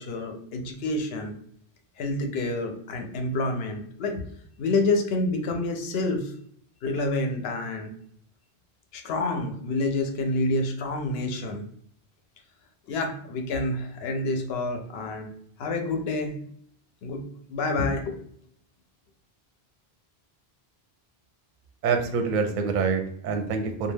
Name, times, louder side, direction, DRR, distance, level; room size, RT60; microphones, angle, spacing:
voice 1, 0.0-1.3 2.0-4.2 4.6-6.3 6.8-7.9 8.9-11.6 12.9-15.3 15.6-16.4 17.0-17.2 17.5-18.2, left 2 dB, 75° left, 5 dB, 0.8 m, -28 dB
voice 2, 21.8-23.9, right 5 dB, 60° right, 5 dB, 0.6 m, -26 dB
2.3 x 2.3 x 3.2 m, 0.64 s
omnidirectional pair, 1.0 m